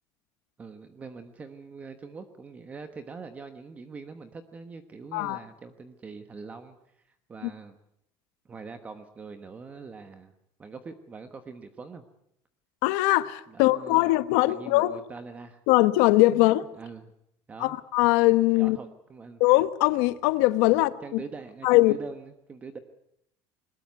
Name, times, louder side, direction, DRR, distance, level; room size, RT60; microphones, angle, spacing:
voice 1, 0.6-7.8 8.4-10.3 10.6-12.0 13.5-15.6 16.3-17.1 17.5-17.8 18.5-19.4 21.0-22.8, right 4 dB, 15° right, 1.1 m, -43 dB
voice 2, 12.8-15.0 15.7-16.6 17.6-18.8 19.4-21.0 21.6-21.9, left 19 dB, 70° left, 1.0 m, -21 dB
21.5 x 20.5 x 9.5 m
cardioid pair, 180°, 9 cm